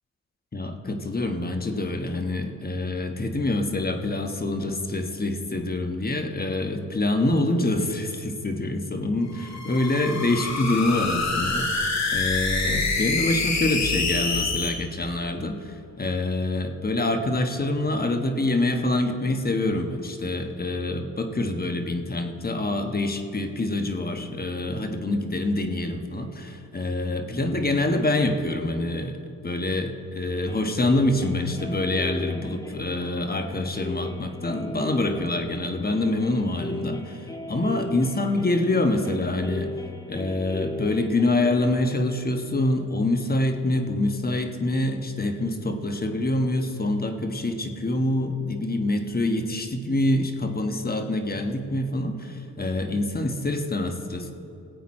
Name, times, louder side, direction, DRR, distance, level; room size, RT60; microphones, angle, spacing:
voice 1, 0.5-29.2 29.4-39.7 40.1-54.3, left 2 dB, 25° left, 6 dB, 1.3 m, -26 dB
sound 1, 9.3-14.7, left 3 dB, 50° left, 2.0 m, -26 dB
sound 2, 30.4-42.0, left 1 dB, 10° left, 1.3 m, -37 dB
17.5 x 8.2 x 4.3 m, 2.9 s
cardioid pair, 70°, 35 cm